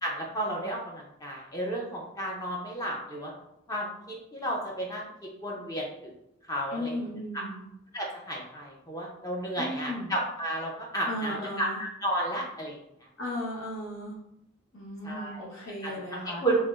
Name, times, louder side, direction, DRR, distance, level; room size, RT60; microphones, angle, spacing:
voice 1, 0.0-3.3 3.7-5.1 5.4-6.1 6.5-7.0 7.3-7.4 7.9-12.8 15.0-15.5 15.8-15.9 16.4-16.7, right 1 dB, 15° left, -2 dB, 0.6 m, -32 dB
voice 2, 6.7-7.6 9.6-10.1 11.0-11.8 13.2-14.2 14.7-16.4, left 1 dB, 70° left, -4 dB, 1.2 m, -36 dB
4.3 x 2.9 x 2.5 m, 0.82 s
head